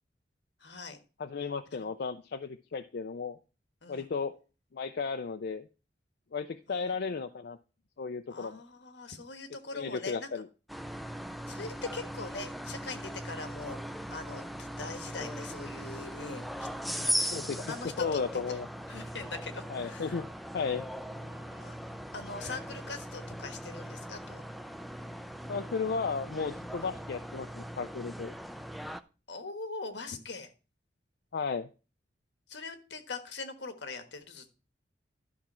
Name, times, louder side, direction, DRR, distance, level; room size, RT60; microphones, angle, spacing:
voice 1, 0.6-1.0 1.7-1.9 3.8-4.1 6.7-7.2 8.3-10.3 11.5-16.7 16.9-18.2 18.5-18.6 18.9-20.2 21.1-24.4 26.8-27.0 29.3-30.5 32.5-34.5, left 3 dB, 85° left, 8 dB, 1.3 m, -42 dB
voice 2, 1.2-3.4 3.9-4.3 4.7-5.6 6.3-7.6 8.0-8.6 9.7-10.5 15.1-15.2 17.3-17.6 18.0-18.7 19.7-20.3 20.5-20.8 25.5-28.3 31.3-31.7, left 5 dB, 60° left, 8 dB, 0.5 m, -34 dB
sound 1, 10.7-29.0, equal, ahead, 0.4 m, -39 dB
12.0 x 5.8 x 4.3 m, 0.33 s
head